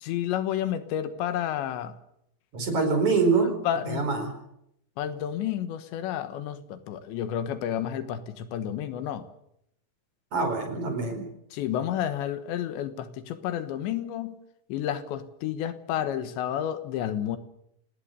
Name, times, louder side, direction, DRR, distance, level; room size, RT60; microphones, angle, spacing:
voice 1, 0.0-1.9 3.7-4.1 5.0-9.3 11.5-14.4 14.7-17.4, left 10 dB, 80° left, 11 dB, 3.5 m, -30 dB
voice 2, 2.5-3.5 3.9-4.3 10.3-11.3, right 4 dB, 40° right, 5 dB, 5.7 m, -25 dB
26.5 x 19.0 x 6.8 m, 0.77 s
omnidirectional pair, 5.2 m